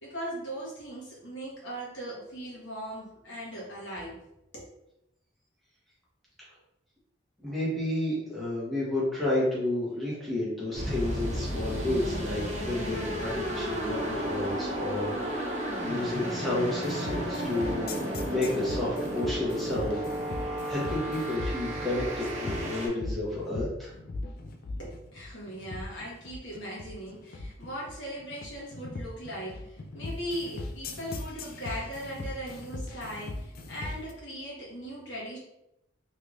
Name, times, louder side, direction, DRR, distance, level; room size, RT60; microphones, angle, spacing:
voice 1, 0.0-4.2 4.5-4.7 24.8-35.4, equal, 75° left, -5 dB, 1.3 m, -39 dB
voice 2, 7.4-15.5 15.8-23.9, left 1 dB, ahead, -8 dB, 1.0 m, -31 dB
sound 1, 10.7-22.9, right 1 dB, 40° right, 0.8 m, -33 dB
sound 2, 16.8-34.1, left 2 dB, 50° left, 0.3 m, -39 dB
3.3 x 3.1 x 2.5 m, 0.84 s
head